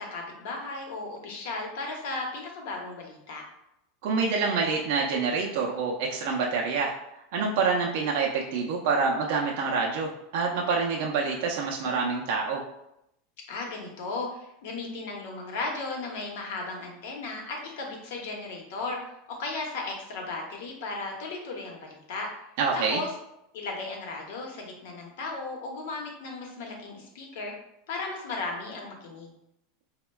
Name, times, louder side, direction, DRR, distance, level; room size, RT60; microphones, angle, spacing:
voice 1, 0.0-3.4 13.5-19.0 19.4-22.3 22.7-23.1 23.5-27.5 27.9-29.3, left 3 dB, 70° left, 1 dB, 0.8 m, -35 dB
voice 2, 4.0-6.9 7.3-12.6 22.6-23.0, right 4 dB, 60° right, -1 dB, 0.4 m, -27 dB
4.1 x 2.1 x 2.2 m, 0.82 s
supercardioid pair, 150°, 0 cm